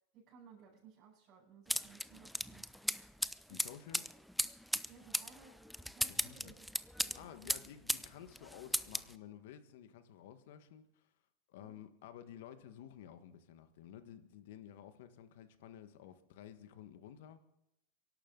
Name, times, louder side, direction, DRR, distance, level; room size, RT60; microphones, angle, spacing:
voice 1, 0.1-2.7 3.5-3.7 4.8-6.7 7.0-7.7 11.6-11.9, right 5 dB, 45° right, -8 dB, 7.0 m, -60 dB
sound 1, 1.7-8.1 8.3-9.1, equal, ahead, 0.5 m, -37 dB
voice 2, 3.5-4.2 6.1-6.5 7.1-11.1 11.5-17.4, left 10 dB, 75° left, 10 dB, 1.5 m, -53 dB
24.5 x 11.5 x 3.9 m, 0.83 s
supercardioid pair, 120°, 0 cm